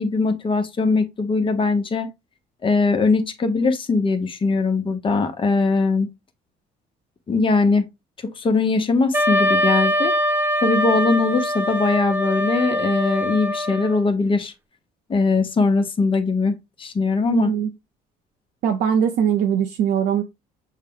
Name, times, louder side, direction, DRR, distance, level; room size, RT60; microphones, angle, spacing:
voice 1, 0.0-2.1 2.6-6.1 7.3-7.9 8.4-10.1 10.6-14.5 15.1-17.5, left 3 dB, 30° left, 0.9 m, -21 dB
Wind instrument woodwind instrument, 9.1-14.0, equal, 10° right, 0.6 m, -22 dB
voice 2, 17.3-17.7 18.6-20.2, right 8 dB, 70° right, 0.6 m, -21 dB
6.5 x 2.2 x 3.6 m
cardioid pair, 110°, 17 cm